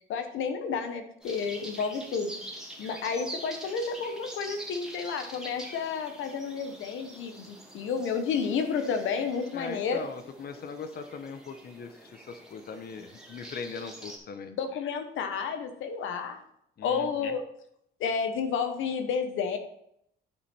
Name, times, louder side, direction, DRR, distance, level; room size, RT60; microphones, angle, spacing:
voice 1, 0.1-2.3 2.8-10.0 14.5-16.4 16.8-17.4 18.0-19.6, left 6 dB, 80° left, 8 dB, 1.1 m, -31 dB
sound 1, 1.2-14.2, right 1 dB, 5° right, 2.2 m, -45 dB
voice 2, 9.5-14.5 16.8-17.3, left 5 dB, 50° left, 8 dB, 1.0 m, -40 dB
10.0 x 5.3 x 4.3 m, 0.73 s
cardioid pair, 90°, 20 cm